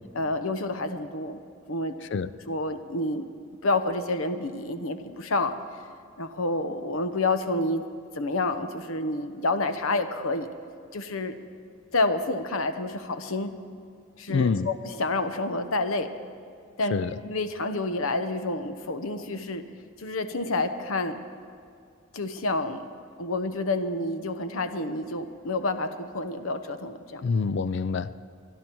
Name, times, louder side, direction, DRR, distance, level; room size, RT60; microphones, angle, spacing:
voice 1, 0.1-1.4 1.7-2.0 2.5-3.3 3.6-5.5 6.2-7.8 8.2-10.5 10.9-11.3 11.9-13.5 14.2-16.1 16.8-19.6 20.0-21.2 22.1-22.8 23.2-27.2, left 2 dB, 75° left, 9 dB, 0.9 m, -29 dB
voice 2, 14.3-14.7 16.9-17.1 27.2-28.1, left 5 dB, 55° left, 15 dB, 0.4 m, -26 dB
24.0 x 11.0 x 4.6 m, 2.3 s
head